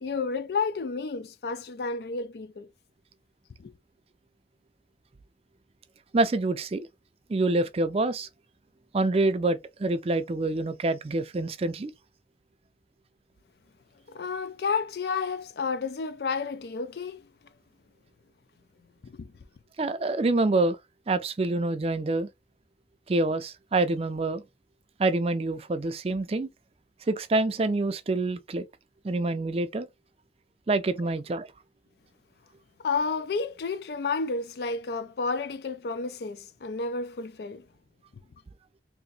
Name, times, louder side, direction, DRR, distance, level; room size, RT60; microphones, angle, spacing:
voice 1, 0.0-2.7 3.6-3.7 14.1-17.3 19.0-19.3 32.8-37.6, left 4 dB, 60° left, 0.4 m, -31 dB
voice 2, 6.1-6.9 7.3-8.3 8.9-11.9 19.8-20.8 21.1-22.3 23.1-24.4 25.0-26.5 27.1-28.7 29.0-29.9 30.7-31.5, right 2 dB, 30° right, 0.4 m, -26 dB
2.9 x 2.5 x 3.9 m
head